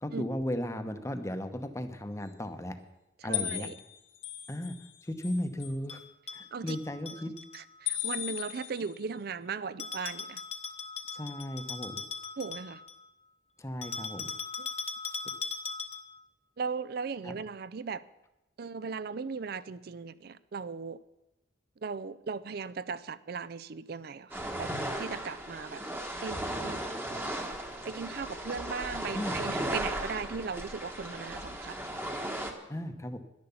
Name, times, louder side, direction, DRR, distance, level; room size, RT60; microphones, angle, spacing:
voice 1, 0.0-2.8 3.2-3.7 4.5-4.8 5.0-6.0 6.3-7.3 11.1-12.0 13.6-14.3 17.2-17.3 29.1-29.4 32.7-33.2, left 1 dB, 15° left, 8 dB, 0.8 m, -35 dB
voice 2, 3.2-3.8 6.5-6.8 7.5-10.4 12.4-12.8 14.6-14.7 16.6-18.0 18.6-21.0 21.8-25.8 26.2-26.8 27.8-31.8, right 5 dB, 55° right, 17 dB, 0.4 m, -38 dB
sound 1, 3.3-4.9 5.2-5.7 7.9-9.0, left 12 dB, 90° left, 1.2 m, -36 dB
Bell, 5.9-7.6 9.8-13.0 13.8-16.2, left 5 dB, 35° left, 1.0 m, -39 dB
sound 2, 24.3-32.5, right 1 dB, 10° right, 1.2 m, -36 dB
11.0 x 10.5 x 7.0 m, 0.96 s
head